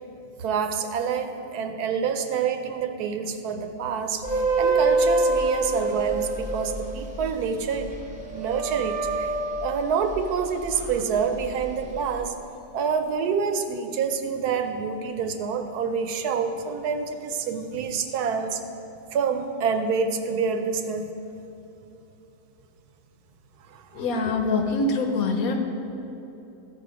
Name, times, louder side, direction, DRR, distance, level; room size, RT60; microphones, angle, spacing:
voice 1, 0.4-8.0 8.3-9.3 9.6-12.3 12.7-18.6 19.1-21.1 23.7-24.0, right 6 dB, 75° right, 7 dB, 1.1 m, -27 dB
sound 1, 4.2-10.9 11.3-12.2, right 3 dB, 5° right, 0.8 m, -26 dB
voice 2, 23.9-25.6, left 3 dB, 65° left, 4 dB, 1.2 m, -24 dB
14.0 x 4.8 x 5.0 m, 2.9 s
omnidirectional pair, 1.7 m